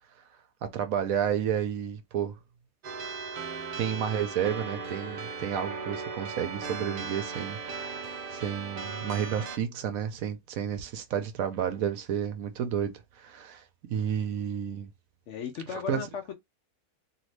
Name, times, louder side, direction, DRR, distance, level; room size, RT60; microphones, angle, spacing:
voice 1, 0.6-2.4 3.8-13.6 13.9-14.9 15.7-16.0, right 8 dB, 70° right, 1.0 m, -31 dB
sound 1, 2.8-9.6, right 5 dB, 90° right, 0.4 m, -37 dB
voice 2, 15.3-16.3, left 7 dB, 65° left, 0.8 m, -36 dB
2.8 x 2.6 x 3.1 m
omnidirectional pair, 1.6 m